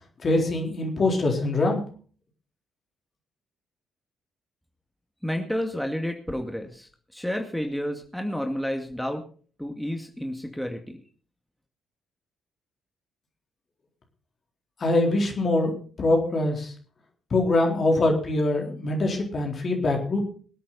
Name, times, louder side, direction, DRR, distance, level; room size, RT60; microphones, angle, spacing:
voice 1, 0.2-1.8 14.8-16.7 17.3-20.3, left 2 dB, 45° left, 1 dB, 4.0 m, -23 dB
voice 2, 5.2-9.2 9.6-11.0, equal, ahead, 3 dB, 2.2 m, -30 dB
23.5 x 8.5 x 4.2 m, 0.43 s
figure-of-eight pair, 45°, 0 cm